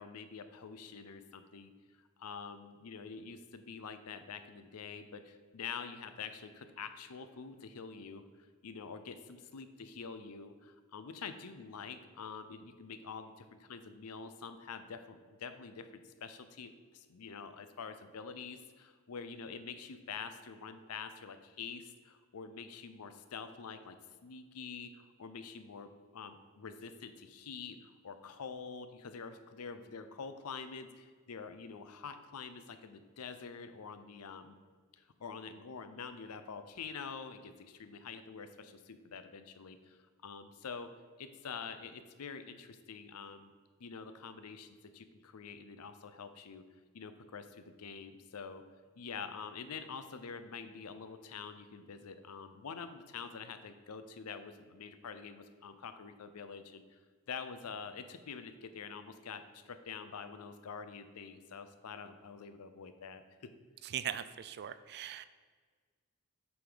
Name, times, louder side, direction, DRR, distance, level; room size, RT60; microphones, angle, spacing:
voice 1, 0.0-1.7 2.2-8.2 8.6-34.6 34.9-40.9 41.2-43.5 43.8-46.6 46.9-48.6 49.0-57.0 57.3-63.2, left 5 dB, 85° left, 10 dB, 0.6 m, -46 dB
voice 2, 63.8-65.3, right 10 dB, 50° right, 14 dB, 0.3 m, -40 dB
8.2 x 4.9 x 3.9 m, 1.5 s
head